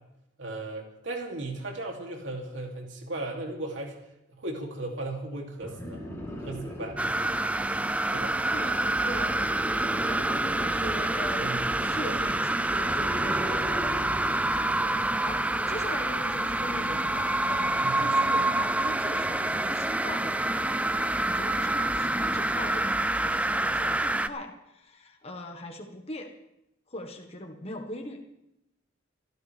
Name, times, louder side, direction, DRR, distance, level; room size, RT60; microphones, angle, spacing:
voice 1, 0.4-4.0 4.3-6.0 6.3-7.0 8.1-8.4 11.4-12.1 14.8-15.0 17.8-18.0, right 2 dB, 80° right, 1 dB, 2.9 m, -36 dB
sound 1, 5.6-7.6 9.3-11.0 12.3-14.6 15.9-16.0, equal, 15° left, 3.3 m, -39 dB
sound 2, 7.0-24.3, right 2 dB, 5° right, 0.4 m, -27 dB
voice 2, 8.5-9.4 9.9-14.2 14.5-20.7 21.0-26.3 26.9-28.2, left 1 dB, 35° left, 2 dB, 1.5 m, -40 dB
27.0 x 12.5 x 3.5 m, 0.85 s
head